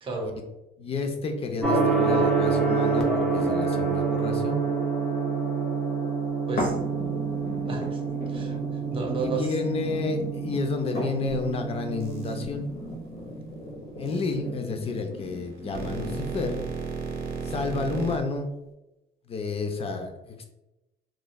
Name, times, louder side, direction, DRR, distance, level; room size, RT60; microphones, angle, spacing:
voice 1, 0.0-0.4 6.5-6.8 7.7-8.0 8.3-9.6, right 3 dB, 30° right, 1 dB, 0.7 m, -32 dB
voice 2, 0.8-4.6 9.2-12.7 14.0-16.6 17.4-18.5 19.3-20.4, left 4 dB, 35° left, 5 dB, 0.5 m, -30 dB
Gong, 1.6-12.4, right 4 dB, 5° left, 0.7 m, -27 dB
sound 1, 6.6-16.6 17.1-17.2, equal, 65° left, 1.0 m, -37 dB
sound 2, 12.0-12.4 14.1-14.3 15.2-18.2, right 5 dB, 70° right, 0.7 m, -34 dB
3.0 x 2.5 x 2.2 m, 0.96 s
cardioid pair, 110°, 17 cm